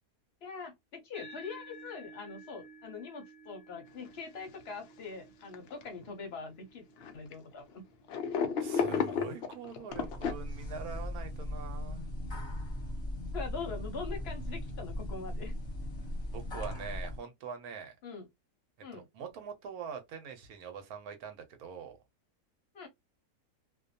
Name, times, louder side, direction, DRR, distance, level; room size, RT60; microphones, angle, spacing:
voice 1, 0.4-6.8 7.1-7.8 13.3-15.5 18.0-18.3 18.8-19.1 22.7-22.9, left 4 dB, 55° left, 0.7 m, -43 dB
sound 1, 1.1-9.9, right 2 dB, 30° right, 0.6 m, -54 dB
sound 2, 4.1-4.2 4.5-4.6 5.4-6.1 7.0-7.3 8.1-10.3, left 6 dB, 85° left, 0.5 m, -32 dB
voice 2, 8.6-12.1 16.3-18.0 18.9-22.0, right 6 dB, 75° right, 1.1 m, -43 dB
sound 3, 9.9-17.2, left 1 dB, 25° left, 0.7 m, -38 dB
2.6 x 2.2 x 2.5 m
omnidirectional pair, 1.6 m